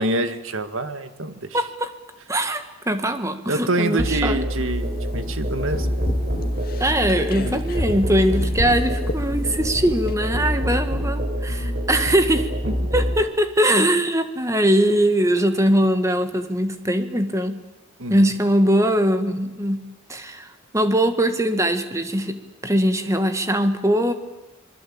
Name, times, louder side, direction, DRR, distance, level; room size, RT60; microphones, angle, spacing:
voice 1, 0.0-1.6 3.5-5.9 12.7-12.8 18.0-18.3, right 2 dB, 70° right, 10 dB, 1.9 m, -26 dB
voice 2, 1.5-1.9 2.3-4.4 6.8-12.5 12.9-17.6 18.1-19.8 20.1-20.5 20.7-22.4 22.6-24.1, right 1 dB, 15° right, 8 dB, 1.7 m, -21 dB
Musical instrument, 4.0-13.2, equal, 45° right, 4.1 m, -26 dB
sound 1, 4.5-10.1, left 1 dB, 45° left, 2.1 m, -34 dB
27.0 x 21.5 x 8.8 m, 1.0 s
head